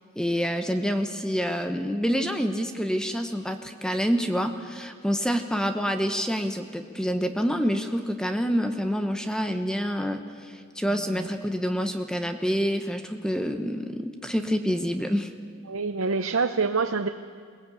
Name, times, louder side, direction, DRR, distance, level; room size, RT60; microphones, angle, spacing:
voice 1, 0.2-15.3, equal, 5° left, 7 dB, 0.9 m, -27 dB
voice 2, 15.7-17.1, right 4 dB, 85° right, 8 dB, 0.7 m, -26 dB
22.0 x 18.0 x 8.3 m, 2.1 s
head